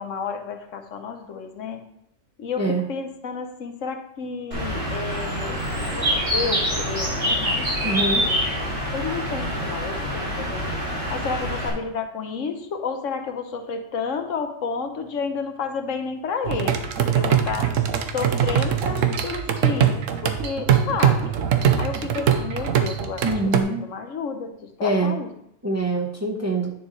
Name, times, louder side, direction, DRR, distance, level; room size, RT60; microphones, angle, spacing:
voice 1, 0.0-1.8 2.4-7.9 8.2-8.4 8.9-10.7 10.9-17.7 18.1-21.4 21.8-23.4 23.7-25.3, left 5 dB, 80° left, 6 dB, 1.2 m, -31 dB
Bird, 4.5-11.7, equal, 50° right, 2.6 m, -26 dB
voice 2, 7.8-8.3 23.2-23.9 24.8-25.1 25.6-26.7, right 2 dB, 15° right, 1 dB, 0.8 m, -24 dB
sound 1, 16.4-23.6, right 8 dB, 80° right, 1.1 m, -22 dB
9.7 x 6.8 x 3.2 m, 0.76 s
omnidirectional pair, 1.3 m